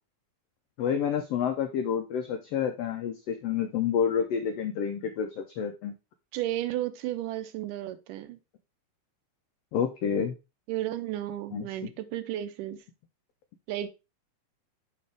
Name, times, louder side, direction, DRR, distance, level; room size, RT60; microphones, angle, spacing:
voice 1, 0.8-5.9 9.7-10.3 11.5-11.7, left 8 dB, 85° left, 1.4 m, -29 dB
voice 2, 6.3-8.4 10.7-12.8 13.7-13.9, right 13 dB, 85° right, 2.3 m, -33 dB
6.7 x 5.4 x 3.4 m
omnidirectional pair, 3.7 m